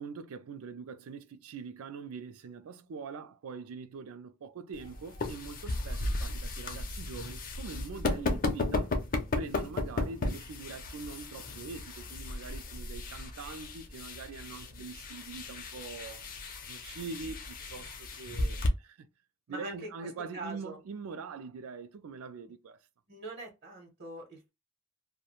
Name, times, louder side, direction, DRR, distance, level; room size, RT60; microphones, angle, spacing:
voice 1, 0.0-8.9 9.4-16.2 16.7-19.1 19.5-22.8, right 5 dB, 80° right, 0.4 m, -43 dB
sound 1, 4.7-18.7, left 2 dB, 40° left, 0.5 m, -35 dB
voice 2, 19.5-20.1 20.3-20.8 23.1-24.5, right 2 dB, 55° right, 0.8 m, -43 dB
2.3 x 2.1 x 3.0 m
head